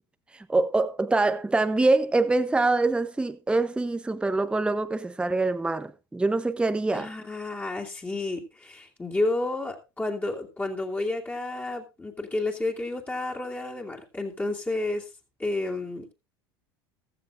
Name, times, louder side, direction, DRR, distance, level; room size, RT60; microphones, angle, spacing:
voice 1, 0.3-7.1, right 3 dB, 10° right, 0.7 m, -24 dB
voice 2, 6.9-15.1 15.4-16.1, left 2 dB, 15° left, 2.6 m, -31 dB
15.0 x 13.5 x 2.5 m
hypercardioid pair, 80°, 13 cm